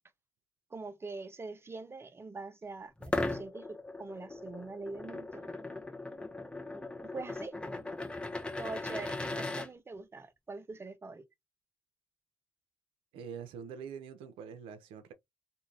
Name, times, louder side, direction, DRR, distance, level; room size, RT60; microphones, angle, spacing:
voice 1, 0.7-5.5 7.1-7.6 8.6-11.2, right 3 dB, 30° right, 0.7 m, -43 dB
sound 1, 3.0-9.7, left 2 dB, 10° left, 0.8 m, -38 dB
voice 2, 13.1-15.1, right 7 dB, 90° right, 0.5 m, -44 dB
2.6 x 2.5 x 3.1 m
supercardioid pair, 65°, 9 cm